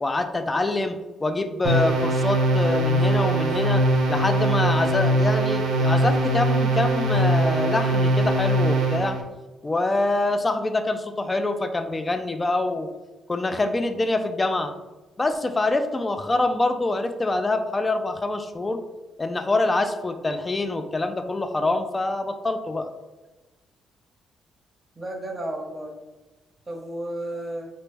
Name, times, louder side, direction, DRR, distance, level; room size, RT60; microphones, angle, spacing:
voice 1, 0.0-3.8 4.1-9.2 9.6-12.9 13.3-14.7 15.2-18.8 19.2-22.9, left 2 dB, 20° left, 8 dB, 0.3 m, -25 dB
sound 1, 1.6-9.2, right 1 dB, 80° right, 0.5 m, -21 dB
voice 2, 25.0-25.9 26.7-27.7, right 1 dB, 25° right, 1 dB, 0.7 m, -32 dB
3.3 x 2.0 x 3.3 m, 1.2 s
cardioid pair, 90°, 0 cm